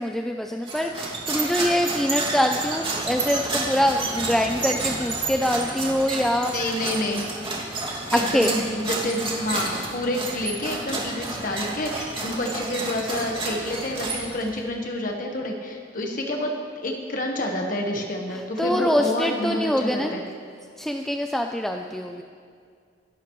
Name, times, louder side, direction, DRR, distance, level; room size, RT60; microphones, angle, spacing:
voice 1, 0.0-6.7 8.1-8.5 18.3-20.1 20.8-22.2, equal, ahead, 3 dB, 0.4 m, -24 dB
sound 1, 0.6-14.6, right 2 dB, 30° right, 2.3 m, -30 dB
voice 2, 6.5-7.2 7.5-7.7 8.1-16.5 16.8-20.2, left 1 dB, 50° left, 1 dB, 1.3 m, -28 dB
24.5 x 12.0 x 3.1 m, 2.2 s
head